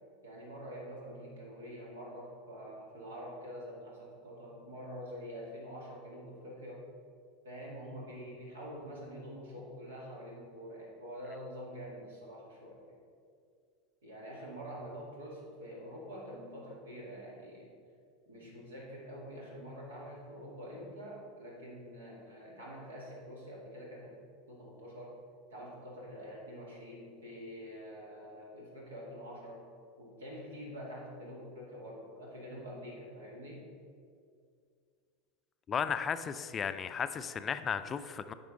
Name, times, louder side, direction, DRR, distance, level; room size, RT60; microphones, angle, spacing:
voice 1, 0.2-6.9 7.4-13.0 14.0-17.7 18.3-24.1 24.5-25.2 25.5-29.7 30.0-33.6, equal, 80° right, -3 dB, 2.1 m, -46 dB
voice 2, 35.7-38.3, left 7 dB, 30° left, 11 dB, 0.4 m, -34 dB
9.3 x 5.4 x 3.9 m, 2.2 s
hypercardioid pair, 85°, 0 cm